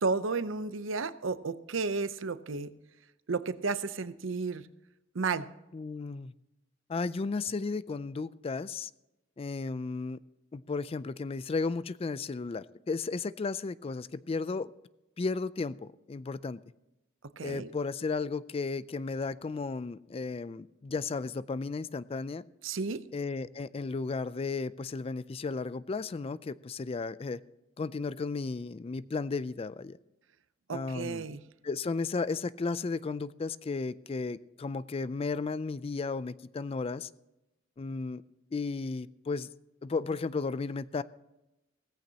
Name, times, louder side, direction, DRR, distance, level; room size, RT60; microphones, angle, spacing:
voice 1, 0.0-2.7 3.3-4.6 5.1-5.5 17.4-17.7 22.6-23.0 30.7-31.4, right 4 dB, 70° right, 14 dB, 0.7 m, -32 dB
voice 2, 5.7-6.3 6.9-8.9 9.4-10.2 10.5-14.7 15.2-16.6 17.4-22.4 23.1-27.4 27.8-30.0 30.7-31.3 31.6-37.1 37.8-38.2 38.5-39.5 39.8-41.0, left 4 dB, 30° left, 17 dB, 0.3 m, -34 dB
17.0 x 15.0 x 2.8 m, 0.94 s
head